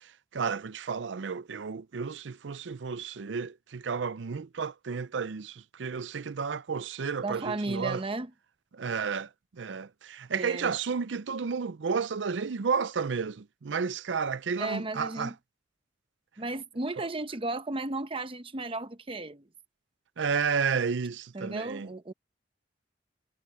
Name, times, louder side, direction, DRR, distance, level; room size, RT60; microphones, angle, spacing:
voice 1, 0.0-8.0 8.7-15.3 17.0-17.1 20.2-21.9, right 5 dB, 85° right, 0.5 m, -32 dB
voice 2, 7.2-8.3 10.3-10.7 14.6-15.3 16.4-19.5 21.3-22.1, right 2 dB, 30° right, 0.9 m, -34 dB
head